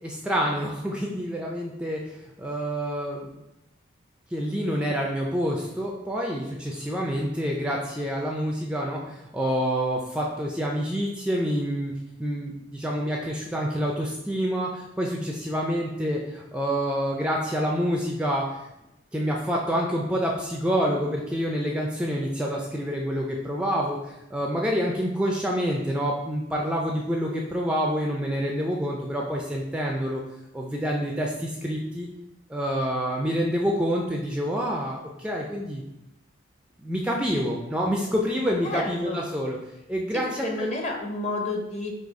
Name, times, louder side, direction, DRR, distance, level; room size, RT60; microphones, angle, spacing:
voice 1, 0.0-2.1 2.4-3.3 4.3-11.9 12.2-18.7 19.1-30.2 30.5-32.1 32.5-35.8 36.8-39.6 39.9-40.7, equal, 5° right, -1 dB, 0.3 m, -27 dB
voice 2, 38.6-39.2 40.1-41.9, left 2 dB, 35° left, 1 dB, 0.8 m, -30 dB
4.0 x 2.7 x 4.6 m, 0.91 s
head